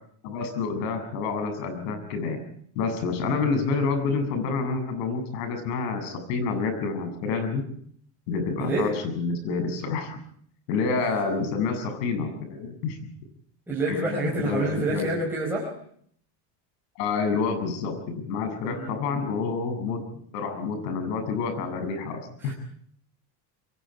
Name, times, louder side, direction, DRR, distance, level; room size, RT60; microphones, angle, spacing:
voice 1, 0.2-2.4 2.8-7.6 8.3-10.1 10.7-13.1 13.9-15.1 17.0-22.5, left 4 dB, 85° left, 8 dB, 7.6 m, -28 dB
voice 2, 8.6-8.9 13.7-15.7 18.7-19.2 22.4-22.5, right 2 dB, 5° right, -4 dB, 5.0 m, -28 dB
27.0 x 22.5 x 4.8 m, 0.63 s
cardioid pair, 165°, 48 cm